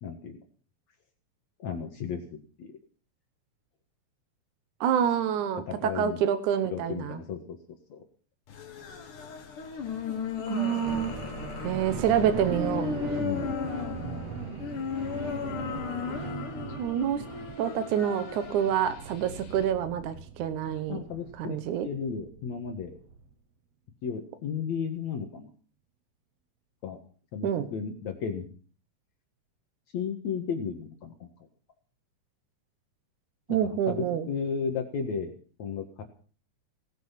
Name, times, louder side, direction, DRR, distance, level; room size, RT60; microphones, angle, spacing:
voice 1, 0.0-0.3 1.6-2.2 2.6-2.7 5.7-6.2 6.6-7.6 7.9-8.0 13.1-13.5 20.9-23.0 24.0-25.5 26.8-27.0 27.3-28.5 29.9-31.3 33.6-35.3 35.6-36.0, left 6 dB, 65° left, 4 dB, 2.8 m, -34 dB
voice 2, 4.8-7.2 10.5-11.1 11.6-12.9 16.8-17.2 17.6-21.1 21.4-21.9 27.4-27.7 33.5-34.3, right 9 dB, 75° right, 10 dB, 2.4 m, -27 dB
sound 1, 8.5-19.7, left 6 dB, 90° left, 3.3 m, -36 dB
sound 2, 10.9-23.3, right 7 dB, 60° right, 2.2 m, -40 dB
18.0 x 12.0 x 5.8 m, 0.42 s
omnidirectional pair, 3.5 m